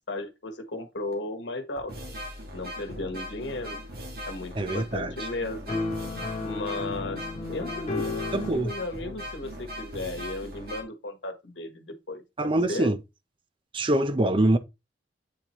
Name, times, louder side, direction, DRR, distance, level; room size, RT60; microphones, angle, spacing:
voice 1, 0.1-1.9 2.5-3.8 4.3-5.8 6.4-12.9, left 2 dB, 85° left, 1.2 m, -35 dB
sound 1, 1.1-1.2 1.8-10.8, equal, 55° right, 1.8 m, -39 dB
voice 2, 4.6-5.1 8.3-8.7 12.4-13.0 13.7-14.6, right 1 dB, 30° right, 0.5 m, -24 dB
sound 2, 5.7-8.5, left 3 dB, 35° left, 0.9 m, -32 dB
8.3 x 4.2 x 3.0 m
head